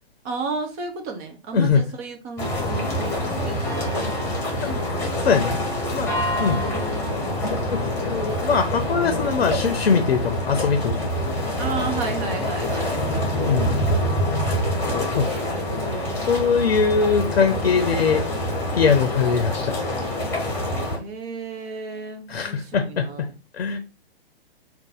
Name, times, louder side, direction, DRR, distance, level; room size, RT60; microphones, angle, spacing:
voice 1, 0.2-4.8 6.3-7.1 11.6-12.9 15.0-16.3 17.3-17.7 21.0-23.3, right 4 dB, 15° right, 0.4 m, -34 dB
sound 1, 2.4-21.0, left 1 dB, 10° left, 1.3 m, -26 dB
voice 2, 5.2-5.6 5.9-6.1 6.4-6.6 7.7-11.0 13.5-13.7 15.2-15.3 16.3-18.2 18.7-19.7 22.3-23.1 23.6-23.8, left 5 dB, 70° left, 0.6 m, -21 dB
3.9 x 2.4 x 3.8 m
figure-of-eight pair, 125°, 31 cm